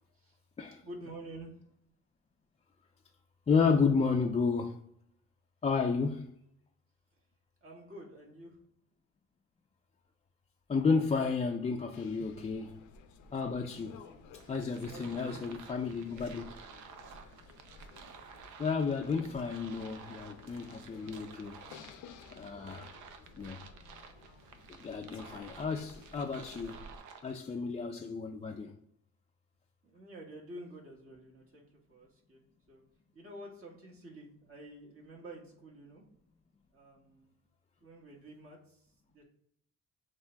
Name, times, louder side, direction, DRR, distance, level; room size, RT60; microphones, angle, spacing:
voice 1, 0.1-0.4 0.8-1.6 7.6-8.6 14.9-15.6 29.8-32.8 33.1-36.0 36.7-37.4 37.8-39.2, right 1 dB, 45° right, 1.5 m, -49 dB
voice 2, 3.5-4.8 5.6-6.3 10.7-12.9 13.3-14.0 14.5-16.5 18.6-21.6 22.3-22.9 23.4-23.6 24.7-26.8 27.2-28.8, left 5 dB, 20° left, 0.4 m, -32 dB
sound 1, 11.9-27.0, left 4 dB, 85° left, 0.6 m, -54 dB
sound 2, 14.4-27.3, right 6 dB, 75° right, 0.6 m, -53 dB
6.9 x 2.7 x 2.2 m
cardioid pair, 90°, 30 cm